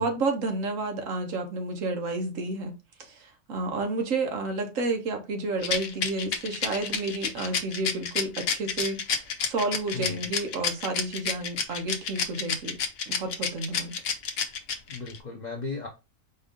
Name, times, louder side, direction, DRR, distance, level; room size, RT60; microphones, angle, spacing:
voice 1, 0.0-12.8 13.1-14.0, right 3 dB, 55° right, 1.1 m, -31 dB
Rattle, 5.6-15.2, left 6 dB, 65° left, 1.0 m, -29 dB
voice 2, 9.9-10.3 14.9-15.9, left 4 dB, 80° left, 0.4 m, -36 dB
4.5 x 2.5 x 3.6 m
omnidirectional pair, 1.8 m